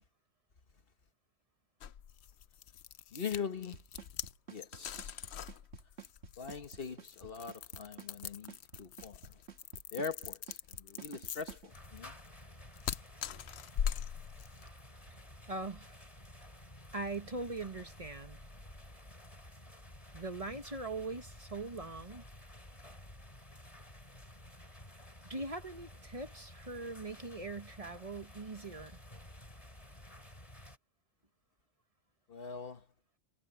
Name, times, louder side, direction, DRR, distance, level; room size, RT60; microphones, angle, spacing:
sound 1, 1.8-14.7, left 9 dB, 75° left, 1.0 m, -42 dB
voice 1, 3.1-3.8 4.5-5.2 6.4-9.4 9.9-12.2 32.3-32.8, left 6 dB, 60° left, 1.5 m, -42 dB
Drum kit / Snare drum / Bass drum, 3.7-11.7, right 6 dB, 75° right, 2.1 m, -50 dB
sound 2, 11.7-30.8, left 1 dB, 30° left, 4.4 m, -53 dB
voice 2, 15.5-15.9 16.9-18.4 20.1-22.2 25.3-29.0, right 2 dB, 35° right, 1.4 m, -41 dB
omnidirectional pair, 1.1 m